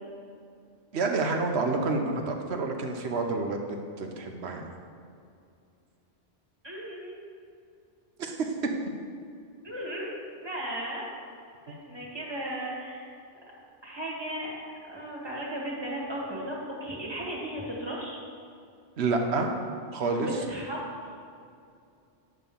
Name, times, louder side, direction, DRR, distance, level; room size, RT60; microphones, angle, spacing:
voice 1, 0.9-3.6 4.0-4.7 8.2-8.5 19.0-19.5 19.9-20.3, right 3 dB, 65° right, 3 dB, 1.1 m, -28 dB
voice 2, 6.6-7.2 9.6-11.1 11.7-13.1 13.8-14.5 14.8-18.2 20.2-20.8 21.0-21.1, right 1 dB, 20° right, -4 dB, 1.9 m, -36 dB
9.6 x 3.7 x 6.9 m, 2.4 s
omnidirectional pair, 1.2 m